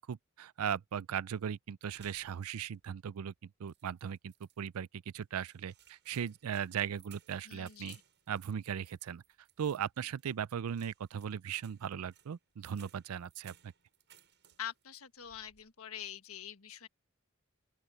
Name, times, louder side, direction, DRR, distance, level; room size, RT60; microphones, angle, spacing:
voice 1, 0.1-4.9 5.1-8.0 8.3-9.2 9.6-13.7, right 8 dB, 80° right, 0.4 m, -38 dB
sound 1, 1.9-2.9 3.2-3.3 3.7-4.6 5.2-14.8 15.2-15.7, right 9 dB, 55° right, 8.0 m, -63 dB
voice 2, 7.4-8.0 14.6-16.9, left 10 dB, 75° left, 1.5 m, -45 dB
open air
head